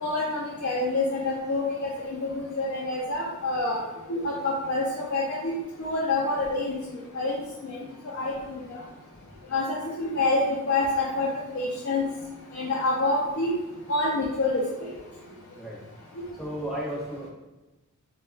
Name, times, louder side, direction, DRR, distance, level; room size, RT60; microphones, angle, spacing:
voice 1, 0.0-3.8 4.1-5.5 5.8-6.8 7.1-7.4 7.6-8.6 9.5-9.6 10.0-11.3 11.5-12.0 12.5-13.5 13.9-14.6, left 2 dB, 65° left, -5 dB, 0.5 m, -27 dB
voice 2, 16.4-17.3, right 1 dB, ahead, -7 dB, 0.6 m, -33 dB
2.2 x 2.2 x 3.1 m, 1.1 s
head